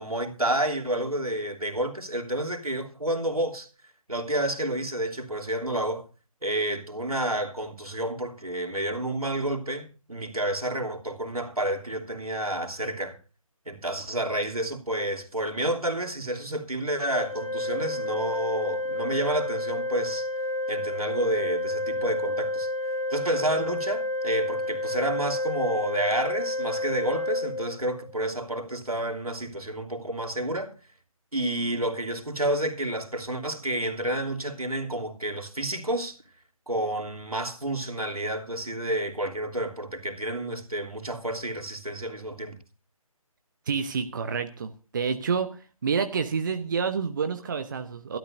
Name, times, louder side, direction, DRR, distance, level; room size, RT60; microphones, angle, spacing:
voice 1, 0.0-3.7 4.1-6.0 6.4-13.2 13.6-20.3 20.7-22.7 23.1-30.7 31.3-36.2 36.7-42.6, right 1 dB, 85° right, 3.0 m, -30 dB
Organ, 17.1-28.2, left 1 dB, 50° left, 2.4 m, -30 dB
voice 2, 43.7-45.5 45.8-48.2, right 6 dB, 35° right, 0.9 m, -28 dB
23.0 x 12.5 x 2.6 m
figure-of-eight pair, 155°, 18 cm